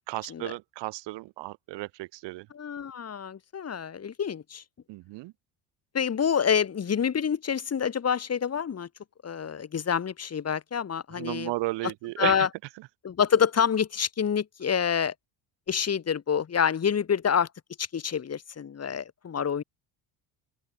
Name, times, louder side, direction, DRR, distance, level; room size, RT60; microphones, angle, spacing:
voice 1, 0.1-2.5 4.9-5.3 11.1-12.5 12.8-12.9, right 20 dB, 75° right, 6.3 m, -34 dB
voice 2, 2.5-4.6 5.9-8.9 9.2-11.5 12.2-12.5 13.0-15.1 15.7-17.5 17.8-19.6, left 7 dB, 35° left, 4.8 m, -27 dB
open air
cardioid pair, 105°, 43 cm